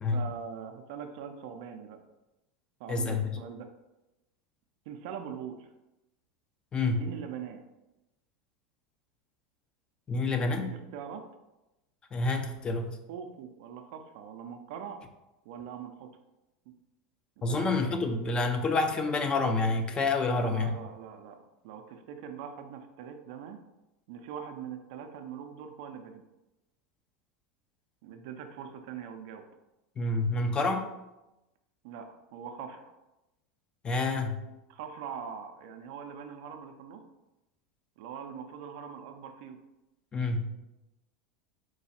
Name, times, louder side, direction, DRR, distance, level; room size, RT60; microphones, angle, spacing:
voice 1, 0.1-2.0 2.8-3.7 4.9-5.7 6.9-7.6 10.6-11.2 13.1-15.0 15.4-16.1 17.4-17.7 20.2-23.6 24.1-26.2 28.0-29.4 31.8-32.9 34.7-37.0 38.0-39.6, right 7 dB, 70° right, 6 dB, 0.5 m, -42 dB
voice 2, 2.9-3.3 6.7-7.1 10.1-10.7 12.1-13.0 17.4-20.8 30.0-30.9 33.8-34.4 40.1-40.5, left 3 dB, 25° left, 6 dB, 0.6 m, -28 dB
4.6 x 2.3 x 4.2 m, 0.96 s
hypercardioid pair, 105°, 4 cm